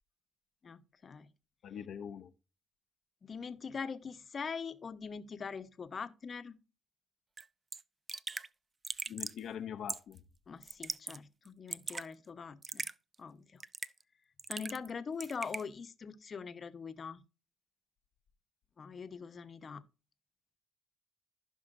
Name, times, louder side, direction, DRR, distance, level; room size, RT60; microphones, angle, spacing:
voice 1, 0.6-1.3 3.2-6.6 10.5-12.9 13.2-13.6 14.5-17.2 18.8-19.8, left 5 dB, 45° left, 1.0 m, -43 dB
voice 2, 1.6-2.3 9.1-10.2, left 8 dB, 70° left, 0.7 m, -42 dB
Raindrop / Drip, 7.4-7.5 7.7-7.8 8.1-8.5 8.8-9.4 9.9-10.2 10.6-11.2 11.5-12.1 12.6-12.9 13.6-14.0 14.4-14.9 15.2-15.6, right 4 dB, 30° right, 0.5 m, -39 dB
15.0 x 5.8 x 2.6 m
cardioid pair, 90°, 0 cm